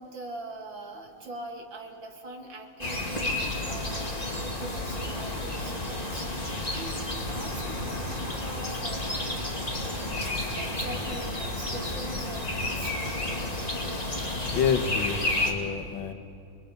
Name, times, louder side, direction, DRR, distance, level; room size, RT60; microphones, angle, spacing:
voice 1, 0.0-9.4 9.8-12.9, right 2 dB, 75° right, 1 dB, 3.1 m, -42 dB
sound 1, 2.8-15.5, left 2 dB, 20° left, 2.3 m, -31 dB
voice 2, 14.5-16.1, left 7 dB, 85° left, 8 dB, 1.9 m, -28 dB
29.0 x 22.5 x 5.2 m, 2.7 s
omnidirectional pair, 2.1 m